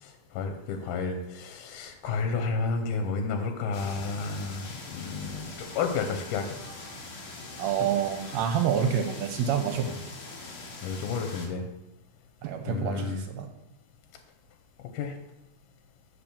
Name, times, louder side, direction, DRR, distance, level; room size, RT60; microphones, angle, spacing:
voice 1, 0.0-6.6 10.4-11.7 12.7-13.2 14.9-15.2, left 4 dB, 85° left, 4 dB, 2.3 m, -31 dB
sound 1, 3.7-11.5, left 2 dB, 50° left, 2.1 m, -42 dB
voice 2, 7.6-10.1 12.4-13.5, right 8 dB, 75° right, 6 dB, 1.7 m, -28 dB
7.8 x 4.2 x 7.0 m, 0.88 s
omnidirectional pair, 3.5 m